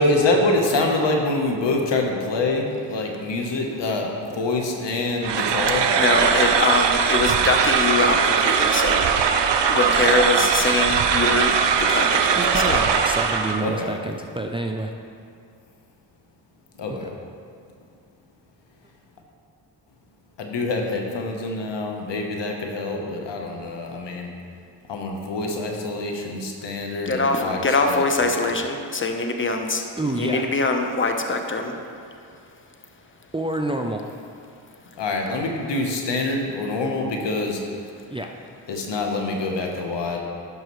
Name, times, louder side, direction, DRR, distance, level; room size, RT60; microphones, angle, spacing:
voice 1, 0.0-5.9 10.1-10.8 13.6-14.0 16.8-17.1 20.4-24.3 24.9-28.0 28.3-28.4 35.0-37.6 38.7-40.2, left 2 dB, 70° left, 2 dB, 1.1 m, -25 dB
sound 1, 5.2-13.7, right 6 dB, 70° right, 0.6 m, -20 dB
voice 2, 6.0-9.0 9.7-11.5 11.8-12.8 27.1-29.8 30.2-31.8, left 3 dB, 25° left, 4 dB, 0.9 m, -23 dB
voice 3, 12.4-14.9 16.9-17.0 30.0-30.5 33.3-34.0 38.1-38.3, right 2 dB, 10° right, 3 dB, 0.4 m, -28 dB
11.0 x 5.5 x 3.1 m, 2.3 s
cardioid pair, 55°, 44 cm